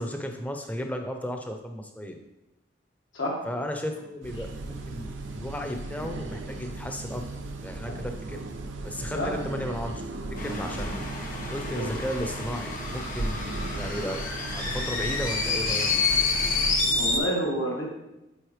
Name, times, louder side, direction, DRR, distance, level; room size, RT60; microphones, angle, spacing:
voice 1, 0.0-2.2 3.4-7.2 7.6-8.4 8.8-10.0 10.4-11.0 11.5-14.2 14.5-15.9, equal, 10° left, 4 dB, 0.6 m, -34 dB
sound 1, 4.2-17.2, right 2 dB, 80° right, 0.7 m, -36 dB
sound 2, 10.4-17.2, left 4 dB, 45° left, 1.1 m, -29 dB
voice 2, 17.0-17.9, equal, 80° left, -3 dB, 1.7 m, -29 dB
7.8 x 4.3 x 3.2 m, 0.95 s
head